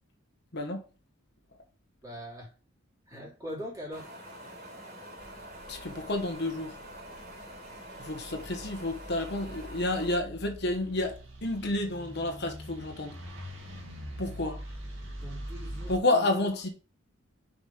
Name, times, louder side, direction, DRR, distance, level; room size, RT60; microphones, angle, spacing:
voice 1, 0.5-0.8 5.7-6.8 8.0-13.2 14.2-14.5 15.9-16.7, left 2 dB, 55° left, 1.2 m, -30 dB
voice 2, 2.0-2.5 3.1-4.1 14.2-14.6 15.2-15.9, equal, 15° right, 3.3 m, -41 dB
Wind, 3.9-10.2, right 1 dB, 40° right, 3.4 m, -46 dB
sound 1, 5.2-16.0, equal, 70° right, 2.0 m, -44 dB
6.5 x 5.2 x 3.4 m
head